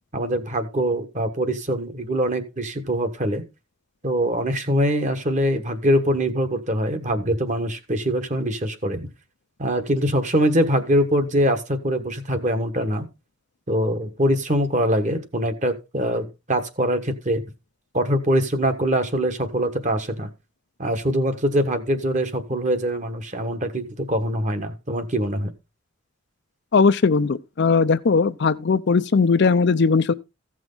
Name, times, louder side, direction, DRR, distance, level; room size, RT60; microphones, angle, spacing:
voice 1, 0.1-3.4 4.0-9.1 9.6-13.1 13.7-17.4 17.9-20.3 20.8-25.5, equal, 35° right, 1.3 m, -23 dB
voice 2, 26.7-30.1, left 4 dB, 55° left, 0.5 m, -19 dB
15.0 x 6.2 x 3.8 m
head